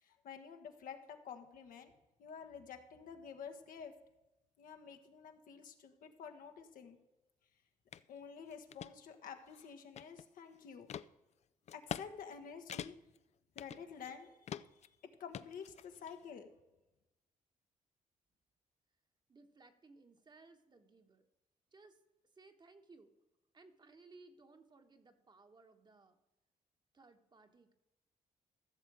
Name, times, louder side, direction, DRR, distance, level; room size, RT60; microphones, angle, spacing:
voice 1, 0.0-1.9 2.2-3.9 4.6-7.0 8.1-10.9 11.7-12.9 13.5-14.9 15.2-16.5, left 6 dB, 75° left, 6 dB, 1.3 m, -50 dB
sound 1, 7.9-8.0 8.5-8.9 9.5-10.4 10.9-11.1 11.7-12.1 12.3-12.4 12.7-13.2 13.6-14.1 14.5-14.9 15.3-16.1, left 9 dB, 50° left, 0.4 m, -45 dB
voice 2, 19.3-21.3 21.7-22.0 22.3-23.1 23.5-26.2 26.9-27.7, right 3 dB, 30° right, 6 dB, 1.2 m, -61 dB
15.0 x 6.7 x 4.8 m, 1.0 s
cardioid pair, 90°, 14 cm